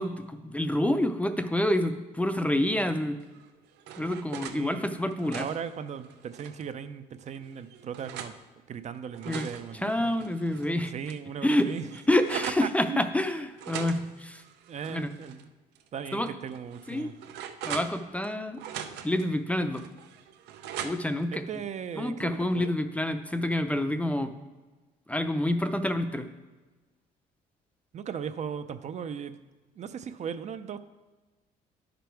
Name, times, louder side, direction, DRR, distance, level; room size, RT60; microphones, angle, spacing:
voice 1, 0.0-3.2 4.0-5.4 9.3-9.5 9.8-10.9 11.4-11.7 12.1-14.4 14.9-15.1 16.1-16.3 16.9-17.1 17.7-18.6 19.0-19.8 20.8-21.4 21.9-24.3 25.1-26.3, left 1 dB, 10° left, 9 dB, 0.5 m, -27 dB
sound 1, 3.3-4.6 5.0-6.7 7.3-8.4 8.9-10.7 11.1-11.2 11.4-12.7 13.6-15.4 15.7-15.9 16.5-18.3 18.6-19.3 19.7-21.2, right 9 dB, 85° right, 0.7 m, -41 dB
voice 2, 4.5-8.4 8.7-10.3 10.9-11.9 12.6-13.1 14.7-15.5 15.9-17.1 21.3-22.7 25.6-25.7 27.9-29.4 29.8-30.8, right 7 dB, 45° right, 11 dB, 0.5 m, -37 dB
9.8 x 5.2 x 4.5 m, 1.2 s
cardioid pair, 110°, 17 cm